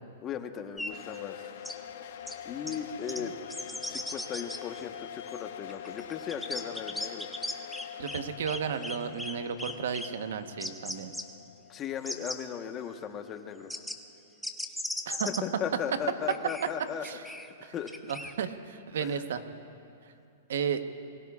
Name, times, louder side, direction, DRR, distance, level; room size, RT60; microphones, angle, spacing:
voice 1, 0.2-1.5 2.4-3.3 3.9-7.3 11.7-13.7 15.4-17.0 17.6-17.9 19.0-19.2, left 8 dB, 30° left, 6 dB, 1.1 m, -37 dB
sound 1, 0.8-0.9 1.6-1.7 2.3-2.4 2.7-2.8 3.1-3.2 3.5-4.6 5.3-5.4 5.7-8.2 8.5-9.3 9.6-10.1 10.6-11.2 11.8-12.4 13.7-14.0 14.4-15.4 16.3-17.5 17.9-18.3, left 1 dB, ahead, 0.7 m, -37 dB
sound 2, 0.9-13.8, left 9 dB, 70° left, 1.1 m, -45 dB
Vehicle / Squeak, 1.5-7.0, left 6 dB, 50° left, 2.6 m, -58 dB
voice 2, 8.0-11.1 15.1-15.3 17.0-17.2 17.6-17.7 18.1-19.4 20.5-20.8, right 7 dB, 75° right, 9 dB, 1.1 m, -34 dB
27.0 x 21.5 x 2.4 m, 2.7 s
hypercardioid pair, 135°, 0 cm